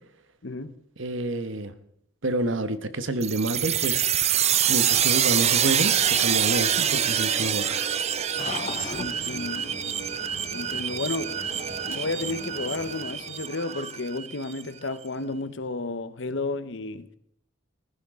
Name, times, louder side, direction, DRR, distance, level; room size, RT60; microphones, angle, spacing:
voice 1, 0.4-0.7 8.9-9.7 10.5-11.3 11.9-17.1, left 3 dB, 65° left, 0.9 m, -32 dB
voice 2, 1.0-1.7 2.2-4.2 4.7-7.9, right 2 dB, 70° right, 1.1 m, -28 dB
sound 1, 3.2-14.6, right 9 dB, 30° right, 0.5 m, -26 dB
sound 2, 8.0-12.7, left 2 dB, 15° left, 3.4 m, -50 dB
sound 3, 8.4-13.5, left 4 dB, 35° left, 0.6 m, -39 dB
15.0 x 15.0 x 3.7 m
head